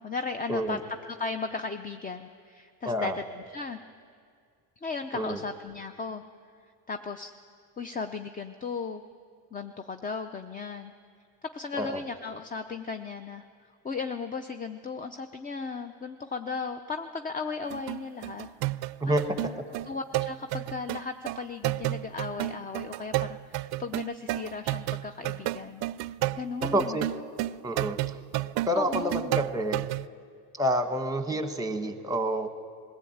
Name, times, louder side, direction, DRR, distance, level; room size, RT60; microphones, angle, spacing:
voice 1, 0.0-3.8 4.8-6.2 6.9-7.3 7.8-9.0 9.5-10.9 11.4-13.4 13.8-18.5 18.8-19.4 19.9-25.8 26.3-27.0 28.7-29.4, left 4 dB, 20° left, 8 dB, 0.5 m, -36 dB
voice 2, 2.8-3.2 5.1-5.4 11.8-12.0 19.0-19.2 26.6-27.1 27.6-28.0 28.7-29.8 30.5-32.5, right 1 dB, 10° right, 8 dB, 1.2 m, -28 dB
sound 1, 17.7-30.1, right 17 dB, 60° right, 0.5 m, -32 dB
20.5 x 15.0 x 8.7 m, 2.2 s
cardioid pair, 125°, 44 cm